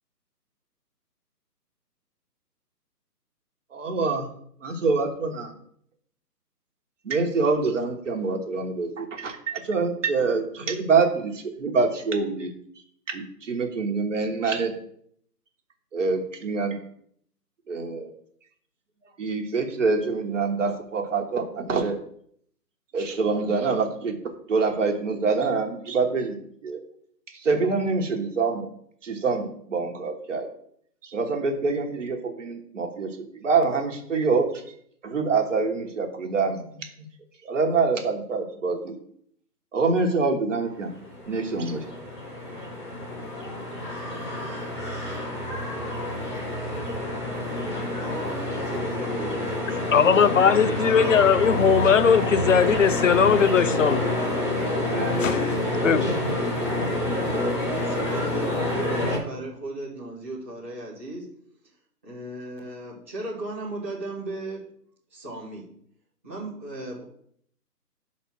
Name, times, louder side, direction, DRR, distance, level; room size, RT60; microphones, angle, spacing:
voice 1, 3.7-4.3 4.6-5.5 7.0-12.5 13.1-14.7 15.9-16.8 17.7-18.1 19.2-22.0 22.9-26.3 26.6-26.8 27.3-28.7 29.0-30.5 31.0-34.6 35.0-36.9 37.4-39.0 39.7-40.9 41.3-41.8, right 4 dB, 50° right, 1.3 m, -25 dB
sound 1, 40.9-59.2, left 1 dB, 15° left, 1.0 m, -28 dB
voice 2, 47.7-51.3 57.0-61.3 62.0-64.7 65.1-65.7 66.2-67.0, right 1 dB, 10° right, 0.7 m, -36 dB
voice 3, 49.9-54.1 55.2-55.6 55.8-56.2, left 7 dB, 55° left, 0.5 m, -19 dB
5.4 x 4.3 x 6.1 m
hypercardioid pair, 160°, 49 cm